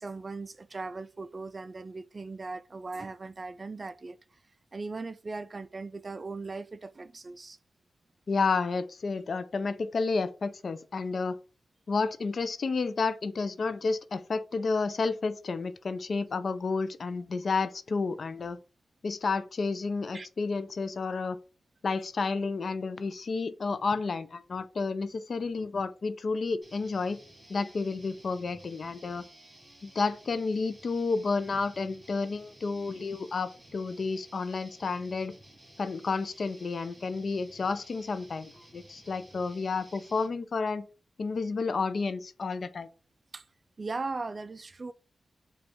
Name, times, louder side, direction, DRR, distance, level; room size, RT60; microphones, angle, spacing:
voice 1, 0.0-4.2 4.7-7.6 20.1-20.3 43.3-43.4 43.8-44.9, right 3 dB, 40° right, 0.3 m, -38 dB
voice 2, 8.3-11.4 11.9-18.6 19.0-21.4 21.8-27.2 27.5-29.3 29.8-35.3 35.8-40.8 41.2-42.9, left 4 dB, 60° left, 0.4 m, -31 dB
sound 1, 26.6-40.3, right 1 dB, 20° right, 1.8 m, -55 dB
4.9 x 2.3 x 3.4 m
cardioid pair, 65°, 0 cm